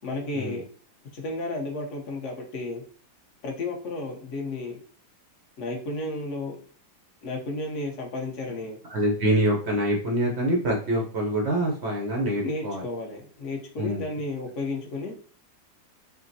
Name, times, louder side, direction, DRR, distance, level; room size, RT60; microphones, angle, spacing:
voice 1, 0.0-0.6 1.1-2.8 3.4-4.8 5.6-6.6 7.2-8.8 12.4-15.1, left 2 dB, 50° left, 1 dB, 1.1 m, -32 dB
voice 2, 8.9-12.8 13.8-14.0, right 1 dB, 70° right, -1 dB, 0.6 m, -25 dB
6.2 x 2.2 x 2.7 m, 0.43 s
omnidirectional pair, 2.0 m